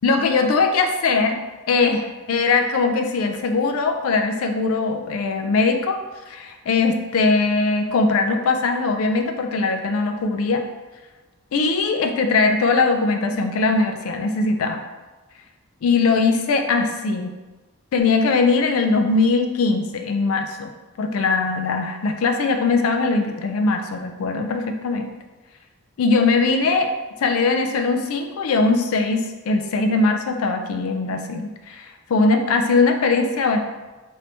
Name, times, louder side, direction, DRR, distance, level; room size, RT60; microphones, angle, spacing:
voice 1, 0.0-1.4 1.7-6.0 6.3-10.6 11.5-14.8 15.8-17.4 17.9-20.7 21.0-25.1 26.0-26.9 27.2-33.6, left 3 dB, 80° left, 6 dB, 0.4 m, -20 dB
3.3 x 2.7 x 2.7 m, 1.2 s
head